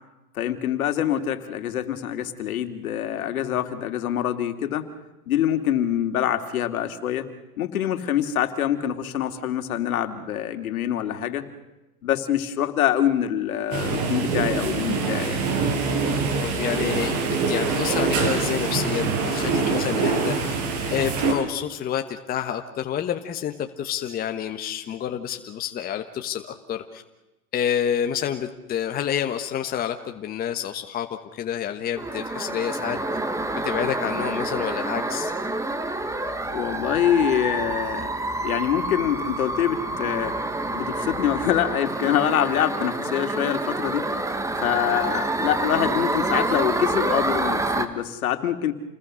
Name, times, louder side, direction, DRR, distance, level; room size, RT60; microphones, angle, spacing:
voice 1, 0.3-4.9 5.3-7.3 7.6-11.4 12.0-15.4 36.5-38.1 38.4-40.4 40.7-44.1 44.6-48.7, left 10 dB, 70° left, 8 dB, 2.7 m, -25 dB
sound 1, 13.7-21.3, right 4 dB, 40° right, 6.0 m, -24 dB
voice 2, 16.4-20.5 20.9-26.4 26.7-27.0 27.5-31.1 31.3-33.0 33.6-35.3, left 9 dB, 20° left, 6 dB, 1.3 m, -28 dB
motor caracas, 32.0-47.9, right 2 dB, 5° right, 1.6 m, -28 dB
29.0 x 20.5 x 6.4 m, 1.0 s
hypercardioid pair, 130°, 44 cm